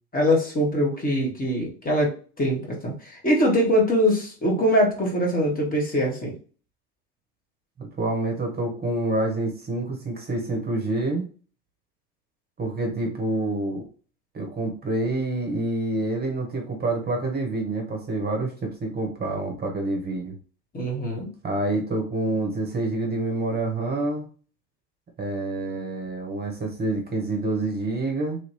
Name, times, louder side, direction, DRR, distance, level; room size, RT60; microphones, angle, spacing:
voice 1, 0.1-6.3 20.7-21.3, equal, 20° left, -1 dB, 1.4 m, -23 dB
voice 2, 7.8-11.3 12.6-13.8 14.3-20.3 21.4-24.2 25.2-28.4, right 2 dB, 20° right, 1 dB, 1.1 m, -27 dB
3.1 x 2.9 x 2.9 m, 0.38 s
figure-of-eight pair, 70°, 47 cm